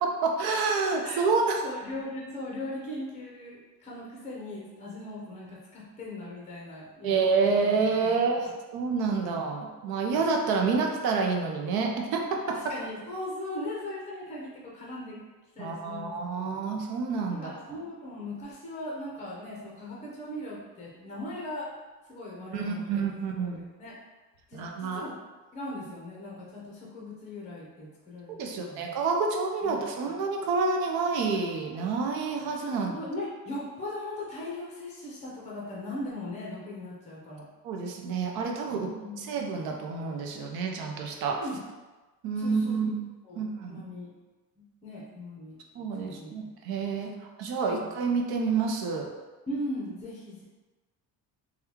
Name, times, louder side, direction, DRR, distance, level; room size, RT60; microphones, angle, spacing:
voice 1, 0.0-1.6 7.0-12.6 15.6-17.5 22.5-23.6 24.5-25.0 28.3-33.0 37.6-38.9 39.3-41.4 42.2-43.1 43.4-43.8 45.8-47.1 47.4-49.1, right 4 dB, 65° right, 2 dB, 0.6 m, -28 dB
voice 2, 1.6-7.6 12.7-15.2 15.5-16.7 17.3-21.7 22.1-23.0 23.4-23.5 23.8-24.0 24.5-25.1 25.5-28.9 29.6-29.7 32.8-37.5 38.7-39.3 41.4-41.6 42.4-42.8 43.2-44.1 44.8-45.6 46.0-46.3 47.1-47.2 47.8-48.0 49.5-50.4, left 1 dB, 15° left, -4 dB, 0.7 m, -39 dB
3.5 x 2.3 x 2.9 m, 1.2 s
cardioid pair, 140°, 39 cm